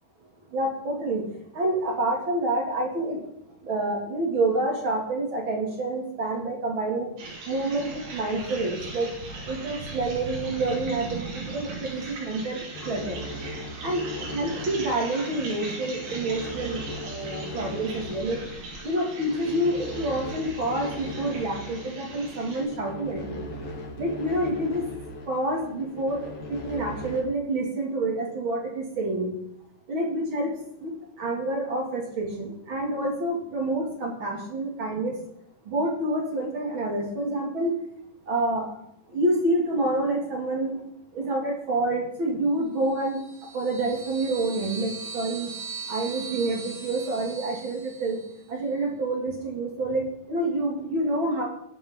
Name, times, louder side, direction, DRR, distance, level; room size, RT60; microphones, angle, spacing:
voice 1, 0.5-1.2 1.5-3.2 3.6-7.1 7.5-9.1 9.5-13.2 13.8-14.0 14.3-18.4 18.8-23.4 24.0-24.8 25.3-29.4 29.9-30.5 30.8-35.1 35.7-37.8 38.3-38.7 39.1-40.8 41.1-43.2 43.5-45.5 45.9-48.2 48.5-51.5, right 2 dB, 40° right, 0 dB, 2.2 m, -28 dB
sound 1, 7.2-22.6, right 3 dB, 75° right, 5.1 m, -39 dB
sound 2, 12.7-27.2, left 1 dB, 45° left, 2.5 m, -39 dB
sound 3, 42.9-48.4, right 5 dB, 15° left, 0.6 m, -40 dB
21.0 x 7.1 x 3.7 m, 0.77 s
omnidirectional pair, 4.6 m